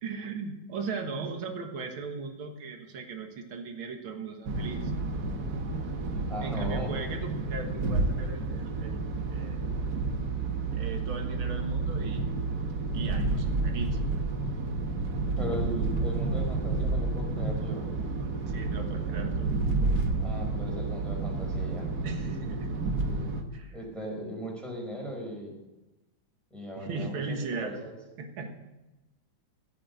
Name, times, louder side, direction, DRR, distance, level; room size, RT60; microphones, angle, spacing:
voice 1, 0.0-4.9 6.4-9.6 10.7-12.2 12.9-14.0 18.5-19.5 22.0-22.7 23.5-23.7 26.8-27.9 28.2-28.5, right 4 dB, 85° right, 3 dB, 2.3 m, -38 dB
sound 1, 4.4-23.4, right 3 dB, 55° right, 1.7 m, -30 dB
voice 2, 6.3-6.9 15.4-17.9 20.2-21.9 23.7-25.5 26.5-28.0, equal, ahead, -2 dB, 4.9 m, -38 dB
14.5 x 8.7 x 8.1 m, 1.0 s
omnidirectional pair, 2.2 m